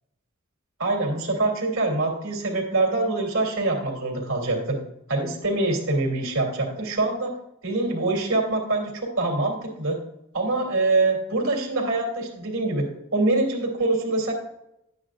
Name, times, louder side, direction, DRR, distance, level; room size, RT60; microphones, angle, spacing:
voice 1, 0.8-4.8 5.1-7.3 7.6-10.0 10.3-12.8 13.1-14.3, right 2 dB, 90° right, 0 dB, 3.0 m, -24 dB
11.0 x 9.4 x 2.5 m, 0.80 s
head